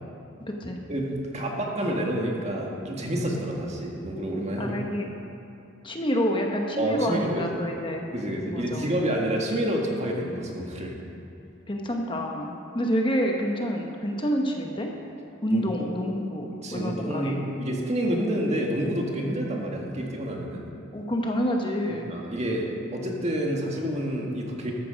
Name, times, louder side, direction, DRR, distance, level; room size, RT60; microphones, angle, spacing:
voice 1, 0.9-4.8 6.8-7.4 8.1-11.0 15.5-15.9 16.6-20.6 21.9-22.7 22.9-24.7, right 1 dB, 35° right, -1 dB, 1.8 m, -28 dB
voice 2, 4.6-5.1 5.8-8.0 8.5-8.9 11.7-14.9 15.4-17.4 18.0-18.1 20.9-22.1, equal, 25° left, 1 dB, 1.0 m, -28 dB
13.5 x 12.5 x 5.2 m, 2.6 s
head